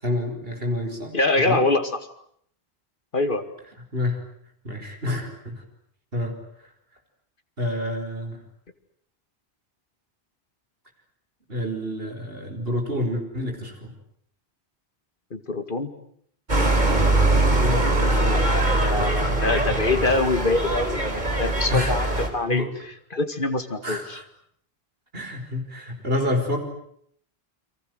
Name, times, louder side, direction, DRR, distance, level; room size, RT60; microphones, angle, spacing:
voice 1, 0.0-1.6 3.9-4.2 4.6-5.6 6.1-6.4 7.6-8.4 11.5-13.9 17.2-19.8 21.7-22.2 22.4-22.7 23.8-24.2 25.1-26.6, left 1 dB, 70° right, 5 dB, 5.4 m, -29 dB
voice 2, 1.1-2.0 3.1-3.4 15.3-15.9 18.2-18.3 18.8-22.1 22.3-22.7 23.1-24.2, left 3 dB, 55° left, 9 dB, 2.4 m, -24 dB
sound 1, 16.5-22.3, right 2 dB, 45° right, 4.1 m, -22 dB
29.5 x 24.0 x 8.0 m, 0.65 s
omnidirectional pair, 1.0 m